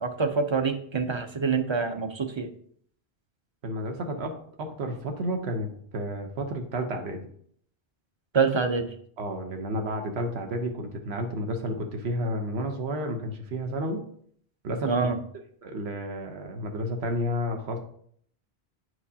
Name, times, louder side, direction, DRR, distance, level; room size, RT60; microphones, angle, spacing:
voice 1, 0.0-2.5 8.3-8.9 14.8-15.2, right 5 dB, 30° right, 7 dB, 0.6 m, -26 dB
voice 2, 3.6-7.2 9.2-14.0 14.6-15.0 15.6-17.8, equal, 80° right, 4 dB, 1.2 m, -31 dB
9.9 x 4.6 x 2.8 m, 0.63 s
omnidirectional pair, 1.1 m